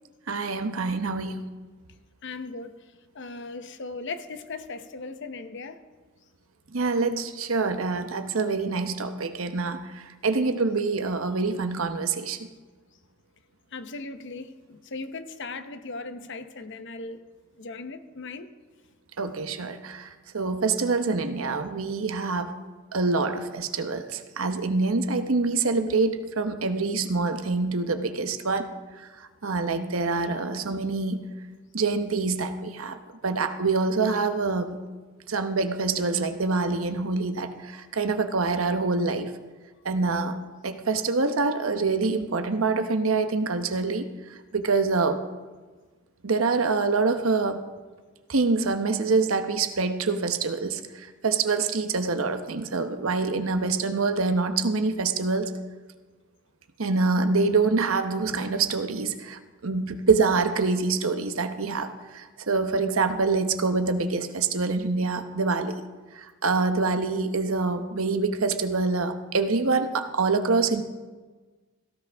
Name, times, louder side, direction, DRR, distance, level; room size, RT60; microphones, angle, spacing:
voice 1, 0.3-1.4 6.7-12.4 19.2-20.1 20.3-22.6 22.9-28.7 29.4-31.2 31.7-33.0 33.2-34.7 35.3-39.3 39.8-40.3 40.6-44.1 44.5-45.2 46.2-47.6 48.3-50.8 51.2-55.5 56.8-65.8 66.4-70.8, right 4 dB, 85° right, 8 dB, 1.0 m, -25 dB
voice 2, 2.2-2.8 3.1-5.8 13.7-17.2 17.6-18.5, left 3 dB, 60° left, 9 dB, 0.9 m, -38 dB
17.5 x 15.5 x 3.5 m, 1.3 s
head